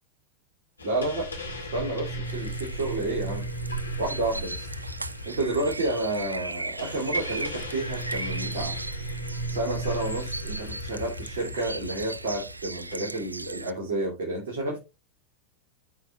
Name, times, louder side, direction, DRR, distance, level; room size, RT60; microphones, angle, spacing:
sound 1, 0.8-12.9, right 1 dB, 75° left, 1.8 m, -36 dB
voice 1, 0.8-1.3 1.7-3.4 4.0-4.7 5.3-8.8 9.5-14.8, right 2 dB, 60° right, 2.4 m, -30 dB
sound 2, 2.2-13.7, right 2 dB, 85° right, 0.3 m, -37 dB
13.0 x 4.9 x 2.4 m
figure-of-eight pair, 90°, 0 cm